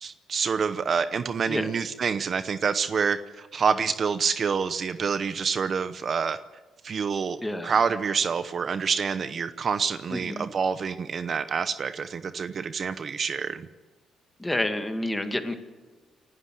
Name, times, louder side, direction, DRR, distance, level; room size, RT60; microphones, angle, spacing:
voice 1, 0.0-6.4 6.8-13.7, right 6 dB, 50° right, 12 dB, 0.8 m, -27 dB
voice 2, 7.4-7.7 10.1-10.5 14.4-15.5, left 1 dB, 10° left, 6 dB, 2.2 m, -29 dB
30.0 x 11.0 x 7.7 m, 1.3 s
cardioid pair, 90°, 0 cm